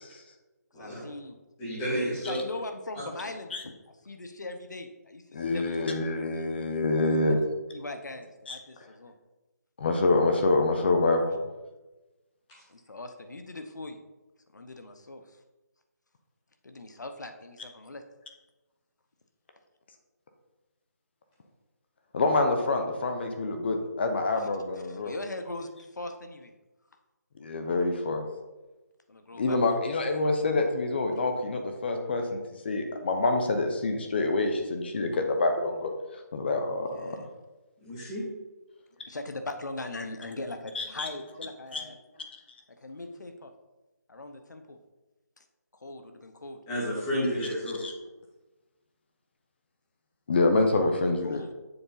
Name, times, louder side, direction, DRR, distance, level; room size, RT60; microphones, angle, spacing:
voice 1, 0.7-1.4 2.3-3.7 4.0-6.0 7.0-7.2 7.7-9.1 12.7-14.0 14.5-15.2 16.6-18.0 24.9-26.5 29.1-29.6 36.9-37.3 39.1-42.0 42.8-43.5 44.1-44.8 45.8-46.6 51.2-51.5, left 2 dB, 85° left, 7 dB, 0.8 m, -40 dB
voice 2, 1.6-2.3 3.0-3.1 37.8-38.2 46.7-47.8, equal, 15° left, -7 dB, 1.9 m, -31 dB
voice 3, 5.3-7.4 8.5-8.6 9.8-11.3 22.1-25.1 27.4-28.3 29.3-32.4 32.6-35.9 36.3-37.2 40.7-41.1 41.7-41.8 47.8-47.9 50.3-51.4, left 2 dB, 35° left, 5 dB, 0.7 m, -26 dB
6.9 x 4.0 x 3.8 m, 1.1 s
figure-of-eight pair, 165°, 9 cm